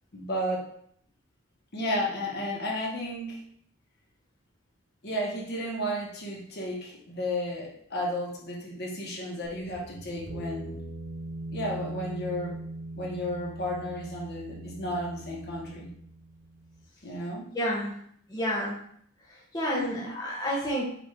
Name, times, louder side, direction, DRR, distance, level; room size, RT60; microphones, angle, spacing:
voice 1, 0.1-0.7 1.7-3.4 5.0-10.8 11.5-12.5 12.9-15.9 17.0-17.5 19.7-20.1, equal, 55° left, -3 dB, 1.1 m, -33 dB
sound 1, 9.4-16.9, right 2 dB, 80° right, 0.5 m, -41 dB
voice 2, 17.5-18.0 18.3-18.9 19.5-20.9, equal, 20° left, -5 dB, 0.7 m, -30 dB
5.0 x 2.6 x 3.3 m, 0.65 s
head